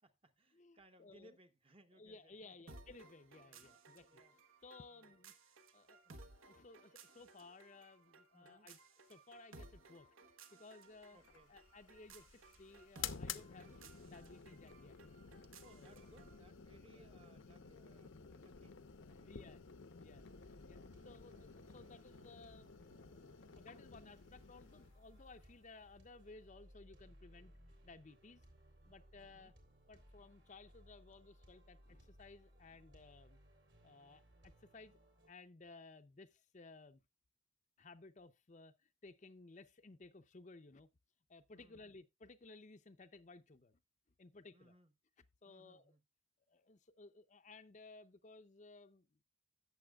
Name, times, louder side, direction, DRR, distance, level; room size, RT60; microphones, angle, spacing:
voice 1, 0.0-2.8 3.4-3.6 4.1-4.3 4.9-5.2 8.3-8.7 11.1-11.5 15.6-18.8 19.1-19.4 29.1-29.5 41.5-41.9 44.5-44.9 45.5-46.0, right 1 dB, 25° right, 0.8 m, -66 dB
voice 2, 0.5-1.4 1.9-4.2 4.6-5.3 5.7-6.0 6.4-8.8 9.1-10.1 10.5-11.2 11.5-15.0 15.7-16.1 16.9-17.1 19.2-19.6 20.0-27.5 27.8-28.4 28.8-29.5 29.9-33.4 33.8-35.0 35.3-37.0 37.8-40.9 41.3-43.8 44.2-44.7 45.4-45.9 46.5-49.3, left 3 dB, 35° left, 0.5 m, -58 dB
sound 1, 2.7-16.4, right 3 dB, 80° right, 1.2 m, -60 dB
sound 2, 11.2-26.5, left 7 dB, 65° left, 0.7 m, -53 dB
sound 3, 20.1-35.3, equal, 60° right, 3.2 m, -64 dB
16.5 x 7.0 x 2.3 m
head